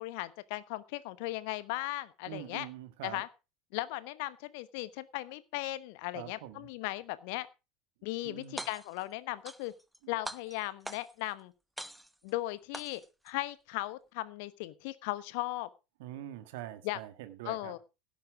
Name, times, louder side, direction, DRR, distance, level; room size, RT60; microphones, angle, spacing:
voice 1, 0.0-2.7 3.0-3.3 3.7-7.5 8.0-9.7 10.1-11.5 12.2-15.7 16.8-17.0 17.5-17.8, left 18 dB, 55° left, 1.1 m, -37 dB
voice 2, 2.3-3.2 6.1-6.7 8.2-8.6 10.0-10.1 16.0-17.8, right 13 dB, 60° right, 1.6 m, -44 dB
sound 1, 8.4-9.0 9.4-10.0 10.2-11.3 11.8-12.3 12.7-13.3, right 1 dB, 5° right, 0.9 m, -43 dB
16.5 x 7.5 x 4.9 m
figure-of-eight pair, 75°, 0 cm